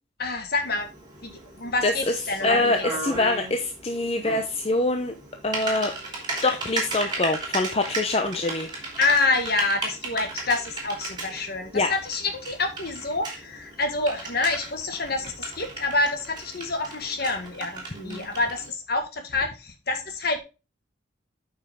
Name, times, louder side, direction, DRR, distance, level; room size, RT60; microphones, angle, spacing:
voice 1, 0.2-0.9 1.2-1.3 1.6-2.8 9.0-20.4, left 3 dB, 50° left, 5 dB, 1.6 m, -27 dB
Typing, 0.6-18.7, right 3 dB, 20° right, 3.1 m, -36 dB
voice 2, 1.8-2.1 2.4-5.1 5.4-5.9 6.4-8.7 11.7-11.9, left 2 dB, 30° left, 5 dB, 0.7 m, -24 dB
8.9 x 5.6 x 3.6 m, 0.29 s
head